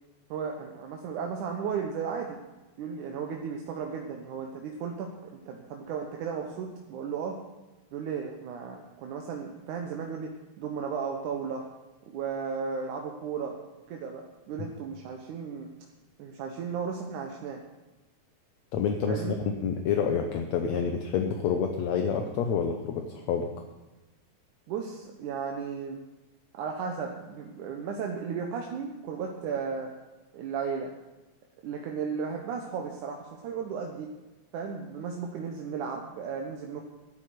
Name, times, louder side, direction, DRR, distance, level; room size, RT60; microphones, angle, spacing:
voice 1, 0.3-2.4 2.8-7.4 7.9-11.6 12.1-13.6 13.9-15.7 16.2-17.6 19.1-19.4 24.7-26.0 26.5-29.9 30.3-30.9 31.6-34.1 34.5-36.8, right 6 dB, 80° right, 2 dB, 2.5 m, -35 dB
voice 2, 18.7-23.5, left 6 dB, 70° left, 4 dB, 2.1 m, -28 dB
11.5 x 9.4 x 9.5 m, 1.1 s
omnidirectional pair, 3.5 m